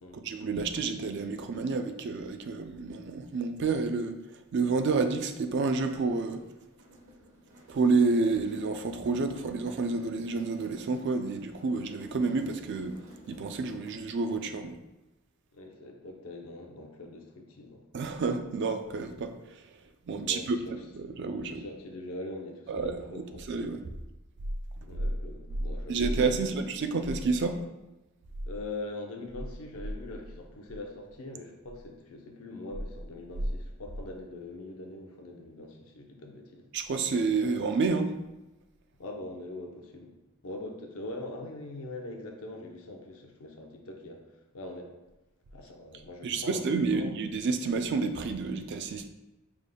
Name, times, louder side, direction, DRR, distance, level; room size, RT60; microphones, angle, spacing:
voice 1, 0.1-6.4 7.7-13.0 13.3-14.8 17.9-19.6 20.1-21.7 22.7-23.8 25.9-27.6 36.7-38.1 46.2-49.1, right 4 dB, 50° right, 7 dB, 0.3 m, -29 dB
sound 1, 5.5-14.1, equal, 80° right, 1.2 m, -54 dB
voice 2, 15.5-18.1 20.1-20.7 21.5-23.5 24.8-26.5 28.4-36.6 39.0-40.1 40.4-44.2 44.5-44.9 45.5-47.1, left 2 dB, 70° left, 2 dB, 0.6 m, -42 dB
4.9 x 3.5 x 2.2 m, 1.0 s
head